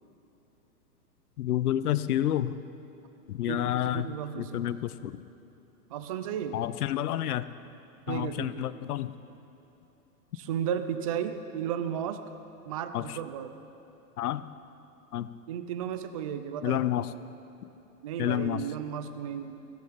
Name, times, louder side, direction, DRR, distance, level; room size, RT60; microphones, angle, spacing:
voice 1, 1.4-2.6 3.3-4.1 4.4-5.2 6.5-7.5 8.1-9.1 12.9-13.2 14.2-14.5 15.1-15.3 16.6-17.1 18.2-18.6, left 12 dB, 65° left, 15 dB, 0.7 m, -29 dB
voice 2, 3.5-4.7 5.9-6.6 8.1-8.7 10.3-12.2 12.7-13.6 15.5-16.9 18.0-19.6, right 9 dB, 25° right, 10 dB, 0.4 m, -34 dB
16.0 x 13.5 x 5.8 m, 2.9 s
hypercardioid pair, 125°, 49 cm